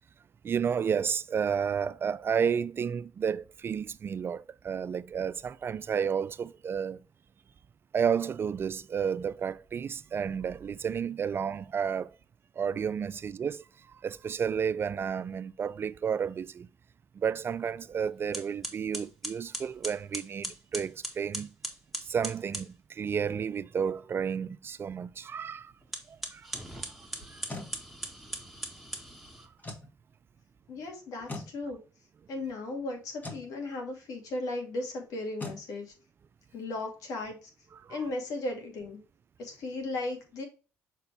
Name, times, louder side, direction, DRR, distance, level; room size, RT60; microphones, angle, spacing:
voice 1, 0.4-7.0 7.9-12.1 12.6-13.6 14.0-16.7 17.2-21.5 22.0-25.7 26.1-26.5 37.7-38.0, right 7 dB, 40° right, 0.3 m, -31 dB
sound 1, 17.8-17.9 18.3-22.7 25.8-29.5, right 1 dB, ahead, 1.7 m, -39 dB
sound 2, 27.2-27.7 29.6-29.9 31.3-31.5 33.2-33.5 35.4-35.6, left 2 dB, 30° left, 1.9 m, -39 dB
voice 2, 30.7-31.8 32.3-35.9 36.5-37.4 37.9-39.0 39.4-40.4, left 2 dB, 75° left, 2.4 m, -36 dB
6.7 x 4.2 x 3.4 m
cardioid pair, 90°, 6 cm